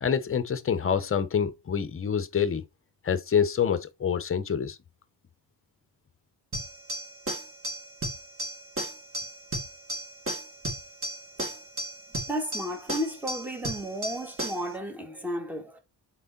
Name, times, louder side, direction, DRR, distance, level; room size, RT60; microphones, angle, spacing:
voice 1, 0.0-2.6 3.0-4.8, left 7 dB, 30° left, 0.7 m, -26 dB
sound 1, 6.5-14.7, right 1 dB, 30° right, 2.2 m, -35 dB
voice 2, 12.3-15.8, equal, 5° right, 1.2 m, -33 dB
6.1 x 4.6 x 4.0 m
wide cardioid pair, 160°, 42 cm